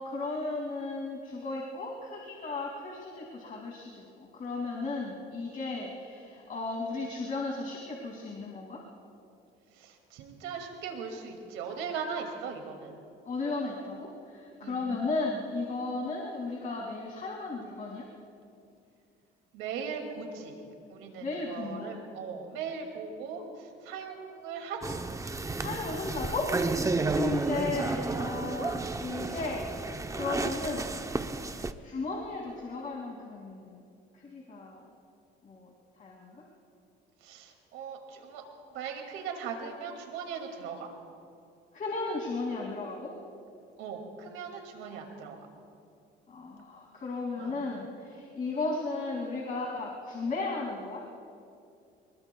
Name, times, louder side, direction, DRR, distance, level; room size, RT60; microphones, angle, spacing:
voice 1, 0.0-4.0 4.3-8.8 13.3-18.0 21.2-21.9 25.6-26.5 27.1-29.7 30.1-30.9 31.8-33.8 34.2-34.9 35.4-35.7 36.0-36.4 41.7-43.1 46.3-51.0, left 3 dB, 40° left, -2 dB, 2.6 m, -35 dB
voice 2, 9.7-12.9 14.6-14.8 19.5-20.6 20.9-25.0 27.0-27.3 37.2-38.4 38.7-40.9 43.8-45.5 47.4-47.6, right 6 dB, 90° right, 3 dB, 2.4 m, -39 dB
sound 1, 24.8-31.7, right 3 dB, 15° right, 0.7 m, -32 dB
27.5 x 21.0 x 2.3 m, 2.5 s
cardioid pair, 90°, 20 cm